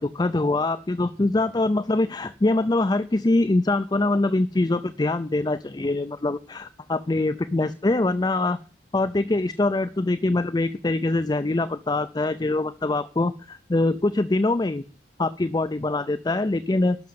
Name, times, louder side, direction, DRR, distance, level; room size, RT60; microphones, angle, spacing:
voice 1, 0.0-8.6 8.9-14.8 15.2-17.0, left 2 dB, 25° left, 13 dB, 0.4 m, -23 dB
11.5 x 6.3 x 7.6 m, 0.40 s
head